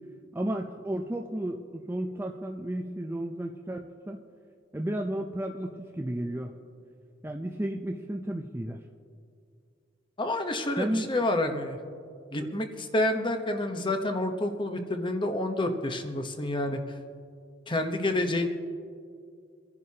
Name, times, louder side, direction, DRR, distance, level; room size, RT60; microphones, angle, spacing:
voice 1, 0.3-4.2 4.7-6.5 7.2-8.8 10.8-11.1 12.4-12.6, right 1 dB, 10° right, 2 dB, 0.5 m, -33 dB
voice 2, 10.2-11.8 12.3-17.0 17.7-18.5, left 1 dB, 25° left, 6 dB, 0.9 m, -29 dB
24.5 x 11.0 x 2.8 m, 2.3 s
head